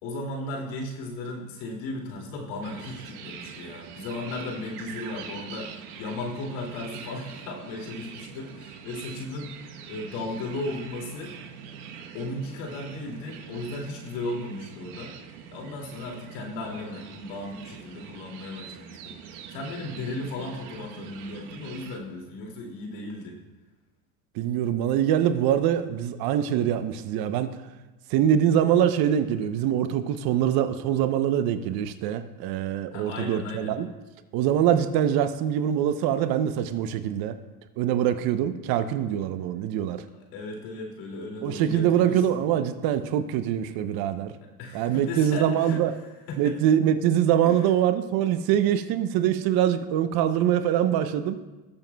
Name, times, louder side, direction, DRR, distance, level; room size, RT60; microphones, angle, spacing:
voice 1, 0.0-9.6 9.9-11.3 12.1-15.1 15.5-19.2 19.5-23.4 32.9-33.8 40.3-42.4 44.4-45.8 46.3-46.6 47.4-47.6, left 2 dB, 65° left, 0 dB, 2.6 m, -35 dB
sound 1, 2.6-22.0, right 7 dB, 75° right, 1.2 m, -43 dB
voice 2, 24.3-27.6 28.1-33.9 34.3-37.4 37.8-40.0 41.4-44.3 44.7-45.9 46.4-51.4, right 10 dB, 50° right, 10 dB, 0.8 m, -24 dB
19.5 x 7.2 x 2.3 m, 1.1 s
supercardioid pair, 105°, 46 cm